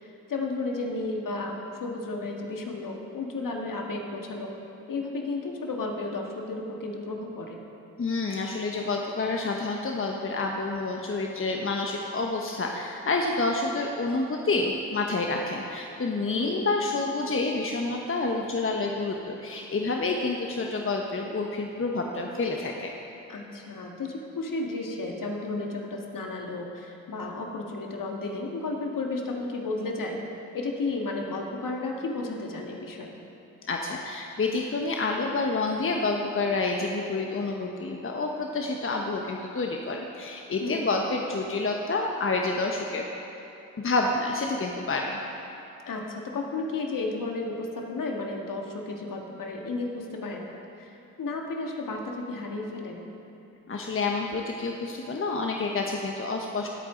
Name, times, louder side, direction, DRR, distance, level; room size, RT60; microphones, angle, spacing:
voice 1, 0.0-4.5 4.9-7.6 16.3-16.6 23.3-30.2 30.5-33.1 40.6-40.9 45.9-53.0, left 3 dB, 50° left, 1 dB, 2.0 m, -33 dB
voice 2, 8.0-22.9 33.7-43.0 43.8-45.2 53.7-56.7, left 3 dB, 30° left, 1 dB, 1.1 m, -28 dB
18.5 x 8.6 x 3.9 m, 3.0 s
hypercardioid pair, 45°, 40 cm